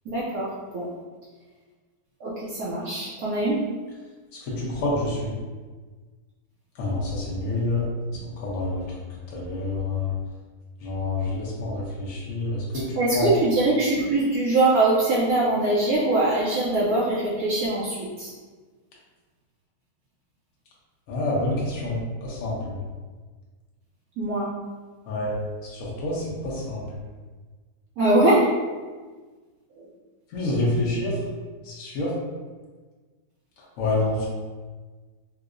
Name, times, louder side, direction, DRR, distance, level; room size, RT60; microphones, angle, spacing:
voice 1, 0.1-0.5 0.7-0.9 2.2-3.6 12.7-18.3 24.2-24.5 28.0-28.5 29.8-29.9, right 2 dB, 70° right, -7 dB, 1.0 m, -22 dB
voice 2, 4.4-5.3 6.8-7.9 8.4-8.9 9.3-10.1 10.8-12.9 13.1-13.3 21.1-22.7 25.1-25.4 25.6-26.8 30.3-31.1 31.6-32.1 33.8-34.3, left 2 dB, 60° left, -5 dB, 1.2 m, -27 dB
4.6 x 2.0 x 2.5 m, 1.4 s
omnidirectional pair, 1.7 m